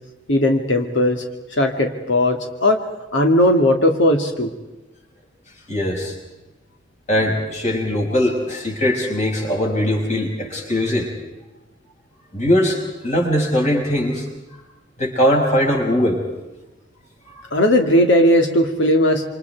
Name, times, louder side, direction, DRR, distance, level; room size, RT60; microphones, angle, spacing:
voice 1, 0.3-1.2 1.6-2.8 3.1-4.5 17.5-19.2, left 1 dB, 75° left, 4 dB, 2.4 m, -17 dB
voice 2, 5.7-6.1 7.1-11.1 12.3-14.3 15.0-16.2 17.3-17.5, equal, 40° left, 0 dB, 6.5 m, -20 dB
28.0 x 26.5 x 4.7 m, 1.1 s
head